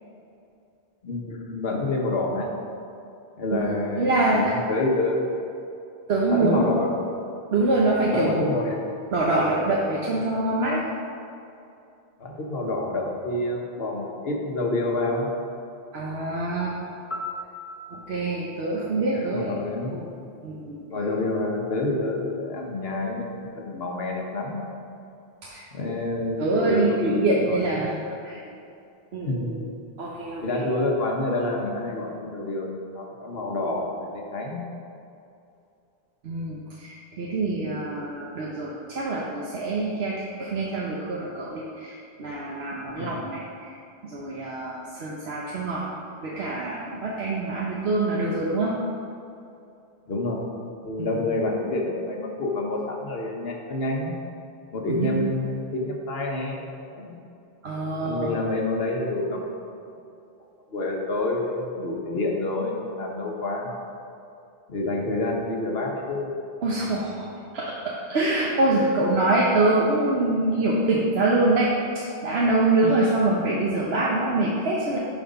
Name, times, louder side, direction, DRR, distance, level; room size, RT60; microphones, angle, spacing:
voice 1, 1.0-2.5 3.4-5.4 6.3-6.9 8.1-8.8 12.2-15.3 19.1-20.0 20.9-24.7 25.7-27.7 28.1-28.4 29.2-29.5 30.4-34.6 43.0-43.2 50.1-50.5 50.8-54.2 54.7-57.2 58.0-59.6 60.7-63.8 64.7-66.3, left 2 dB, 70° left, 0 dB, 1.4 m, -28 dB
voice 2, 4.0-4.5 6.1-6.8 7.5-8.8 9.1-10.9 15.9-16.8 17.9-19.6 19.9-20.1 20.4-20.8 25.4-26.0 26.4-28.0 28.2-28.4 29.1-29.6 30.0-30.7 36.2-43.7 44.0-45.8 46.2-48.7 51.0-51.2 54.9-55.2 57.6-58.3 66.6-67.3 67.5-75.0, right 2 dB, 80° right, -4 dB, 1.2 m, -25 dB
Piano, 17.1-20.0 28.2-28.4, left 2 dB, 15° left, 0.6 m, -40 dB
10.0 x 4.7 x 5.3 m, 2.6 s
omnidirectional pair, 1.1 m